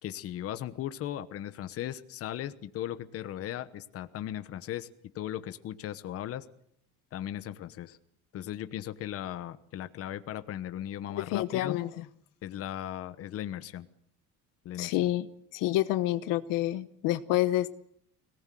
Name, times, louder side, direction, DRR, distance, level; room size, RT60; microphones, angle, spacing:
voice 1, 0.0-4.9 5.1-6.4 7.1-8.0 8.3-11.8 12.4-13.9 14.6-15.0, left 11 dB, 45° left, 11 dB, 1.2 m, -37 dB
voice 2, 11.1-12.1 14.8-15.3 15.5-17.8, left 15 dB, 75° left, 12 dB, 1.2 m, -28 dB
25.0 x 18.5 x 7.7 m, 0.69 s
cardioid pair, 160°, 33 cm